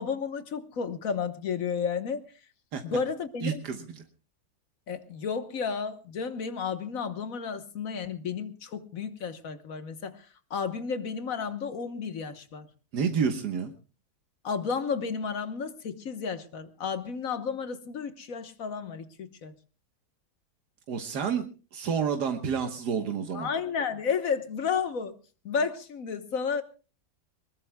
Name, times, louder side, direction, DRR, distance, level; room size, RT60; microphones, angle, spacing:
voice 1, 0.0-2.2 2.8-3.6 4.9-12.7 14.4-19.5 23.3-25.1 25.4-26.6, left 6 dB, 60° left, 10 dB, 1.5 m, -32 dB
voice 2, 3.4-3.8 12.9-13.7 20.9-21.5 21.7-23.5, right 6 dB, 85° right, 5 dB, 1.8 m, -29 dB
23.0 x 20.0 x 2.3 m, 0.35 s
omnidirectional pair, 1.7 m